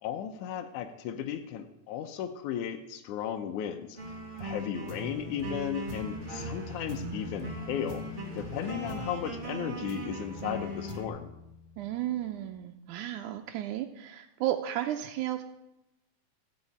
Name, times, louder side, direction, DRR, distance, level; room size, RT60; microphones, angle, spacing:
voice 1, 0.0-8.0 8.4-11.3, left 9 dB, 85° left, 5 dB, 2.2 m, -35 dB
sound 1, 4.0-11.1, right 2 dB, 20° right, 1.4 m, -39 dB
sound 2, 5.2-12.6, left 7 dB, 65° left, 0.5 m, -47 dB
voice 2, 11.8-15.4, right 13 dB, 90° right, 3 dB, 2.1 m, -33 dB
14.5 x 5.5 x 8.5 m, 0.90 s
omnidirectional pair, 3.5 m